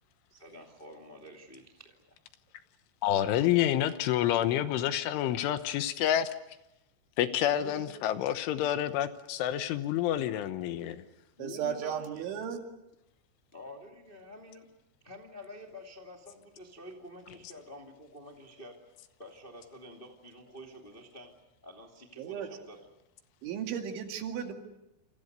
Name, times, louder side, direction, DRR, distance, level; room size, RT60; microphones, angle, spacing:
voice 1, 0.3-2.2 11.4-12.3 13.5-14.7 15.0-22.9, left 1 dB, 25° left, 2 dB, 1.1 m, -49 dB
voice 2, 3.0-6.3 7.2-11.0, left 11 dB, 75° left, 10 dB, 3.4 m, -28 dB
voice 3, 7.5-7.9 11.4-12.7 22.2-22.5 23.4-24.5, right 8 dB, 70° right, 4 dB, 4.5 m, -35 dB
28.5 x 27.0 x 6.7 m, 0.88 s
omnidirectional pair, 5.8 m